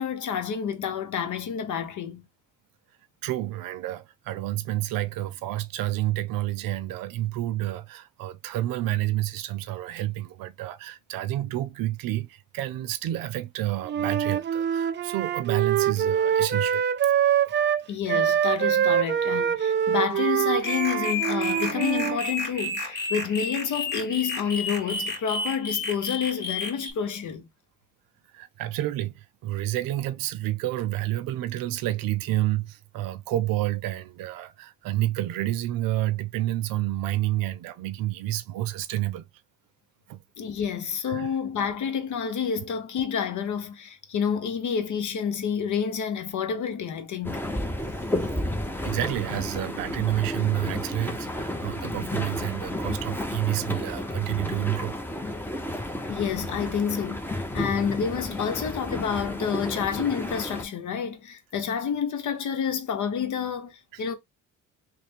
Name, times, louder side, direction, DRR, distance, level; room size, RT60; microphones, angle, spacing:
voice 1, 0.0-2.3 17.9-27.5 40.4-47.4 56.1-64.1, left 7 dB, 60° left, 0.9 m, -29 dB
voice 2, 3.2-17.1 28.3-39.3 40.1-40.2 41.1-41.4 48.8-55.0, right 15 dB, 80° right, 0.6 m, -29 dB
Wind instrument woodwind instrument, 13.9-22.2, right 9 dB, 35° right, 0.4 m, -24 dB
sound 1, 20.6-26.9, left 2 dB, 30° left, 1.5 m, -31 dB
sound 2, 47.2-60.6, left 1 dB, 5° left, 0.8 m, -32 dB
3.2 x 2.2 x 4.3 m
supercardioid pair, 65°, 34 cm